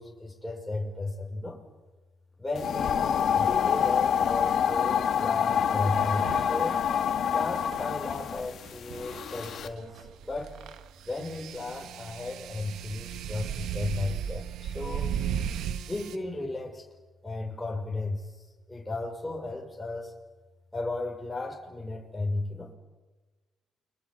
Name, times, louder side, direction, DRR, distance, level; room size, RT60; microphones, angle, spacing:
voice 1, 0.0-1.6 2.4-3.0 3.3-6.8 7.3-10.6 11.0-15.1 15.9-16.8 17.2-20.1 20.7-22.7, left 2 dB, 10° left, -1 dB, 6.0 m, -34 dB
sound 1, 2.5-9.7, left 8 dB, 65° left, 1.8 m, -27 dB
sound 2, 4.2-4.4 6.1-16.2, right 9 dB, 80° right, 1.5 m, -36 dB
29.5 x 23.5 x 7.7 m, 1.3 s
cardioid pair, 90°, 0 cm